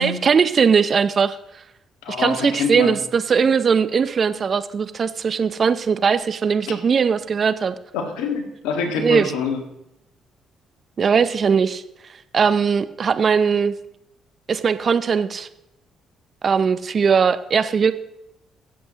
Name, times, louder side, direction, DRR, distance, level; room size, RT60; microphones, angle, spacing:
voice 1, 0.0-1.4 2.1-7.7 9.0-9.3 11.0-11.8 12.3-13.7 14.5-15.5 16.4-17.9, right 6 dB, 50° right, 13 dB, 0.6 m, -19 dB
voice 2, 2.0-2.9 7.9-9.6, left 5 dB, 80° left, 4 dB, 1.7 m, -25 dB
22.5 x 7.9 x 2.9 m, 0.85 s
hypercardioid pair, 55°, 0 cm